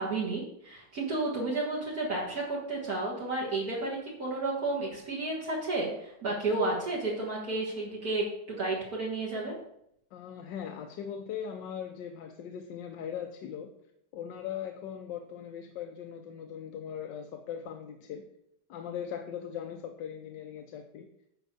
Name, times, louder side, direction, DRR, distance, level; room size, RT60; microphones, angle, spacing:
voice 1, 0.0-9.5, right 2 dB, 60° right, -5 dB, 2.2 m, -32 dB
voice 2, 10.1-13.7 14.1-18.2 18.7-21.1, left 8 dB, 85° left, 4 dB, 1.4 m, -39 dB
8.8 x 4.8 x 6.7 m, 0.75 s
omnidirectional pair, 1.9 m